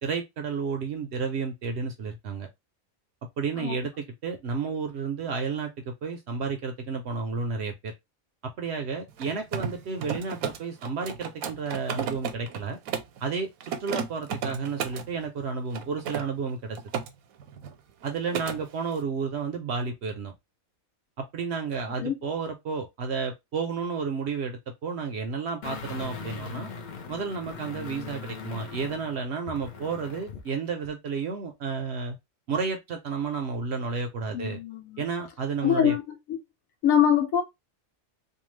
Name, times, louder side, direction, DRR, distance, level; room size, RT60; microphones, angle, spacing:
voice 1, 0.0-2.5 3.4-7.9 8.6-12.8 13.2-16.8 18.0-20.3 21.3-26.7 27.1-32.2 32.5-34.6 35.0-35.9, right 5 dB, 65° right, 0.7 m, -31 dB
Mechanisms, 9.1-13.2 13.6-15.1 15.7-17.1 17.4-17.7 18.0-18.6, right 7 dB, 85° right, 1.0 m, -34 dB
sound 1, 25.6-30.5 30.8-30.9, left 5 dB, 55° left, 0.5 m, -40 dB
voice 2, 34.3-35.0 35.6-36.0 36.3-36.4 36.8-37.4, left 9 dB, 75° left, 1.1 m, -23 dB
2.7 x 2.2 x 3.1 m
omnidirectional pair, 1.5 m